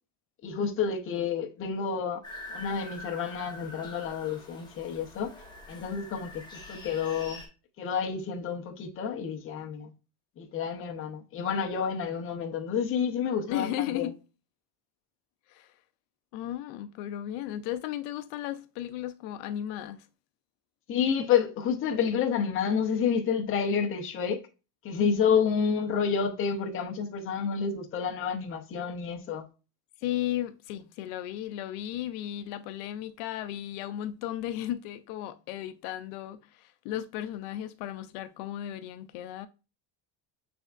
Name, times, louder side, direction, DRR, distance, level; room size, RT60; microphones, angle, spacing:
voice 1, 0.4-2.2 2.5-5.3 5.7-7.4 7.8-9.9 10.4-14.1 20.9-24.4 24.8-29.4, left 6 dB, 25° left, 0.6 m, -29 dB
sound 1, 2.2-7.5, left 2 dB, 10° left, 1.0 m, -45 dB
voice 2, 13.5-14.2 15.5-15.7 16.3-20.1 30.0-39.5, left 12 dB, 85° left, 0.5 m, -35 dB
6.2 x 3.4 x 2.4 m
cardioid pair, 155°, 49 cm